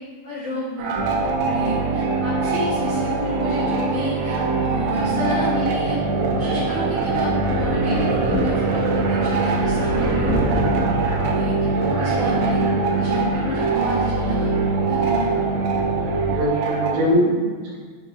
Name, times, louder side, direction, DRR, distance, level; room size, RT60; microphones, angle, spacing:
voice 1, 0.2-6.0 6.3-10.4 11.3-12.6 12.9-14.5 14.8-15.3, left 1 dB, 85° left, -10 dB, 1.3 m, -30 dB
sound 1, 0.8-17.1, right 4 dB, 90° right, 3.3 m, -26 dB
sound 2, 0.9-16.4, right 3 dB, 50° right, 1.6 m, -24 dB
Thunder, 7.5-12.5 12.9-13.0 14.4-14.5, equal, 65° left, 1.8 m, -30 dB
voice 2, 16.3-17.8, equal, 75° right, -5 dB, 2.7 m, -22 dB
10.0 x 4.6 x 2.3 m, 1.5 s
omnidirectional pair, 5.4 m